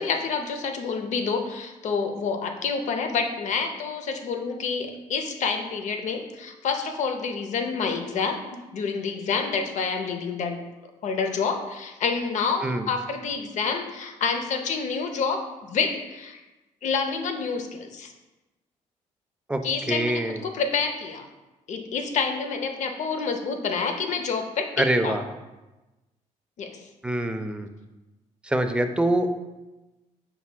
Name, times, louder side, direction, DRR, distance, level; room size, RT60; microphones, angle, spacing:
voice 1, 0.0-10.6 11.0-16.4 16.8-18.1 19.6-21.3 21.7-24.7 25.0-25.2 26.6-26.7, left 5 dB, 60° left, 5 dB, 0.6 m, -28 dB
voice 2, 19.9-20.4 24.8-25.2 27.0-27.7 28.4-29.4, right 1 dB, 10° right, 7 dB, 0.3 m, -24 dB
5.8 x 3.4 x 2.2 m, 1.1 s
cardioid pair, 85°, 14 cm